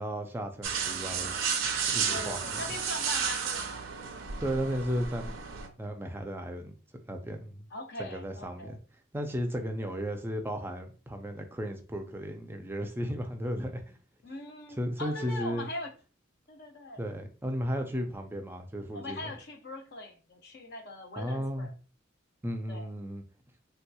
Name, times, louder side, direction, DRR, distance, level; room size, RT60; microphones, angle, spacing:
voice 1, 0.0-1.4 1.8-2.6 4.4-5.4 5.8-6.7 7.1-7.7 8.0-8.8 9.1-14.0 14.8-15.7 17.0-19.3 21.2-21.7 22.4-23.2, equal, 10° right, 0.4 m, -34 dB
sound 1, 0.6-5.7, right 7 dB, 75° right, 0.5 m, -32 dB
voice 2, 2.1-3.9 7.7-8.8 9.8-10.0 14.2-15.9 16.5-17.0 18.9-21.7 22.7-22.9, left 2 dB, 55° left, 0.7 m, -41 dB
3.3 x 2.9 x 2.2 m
head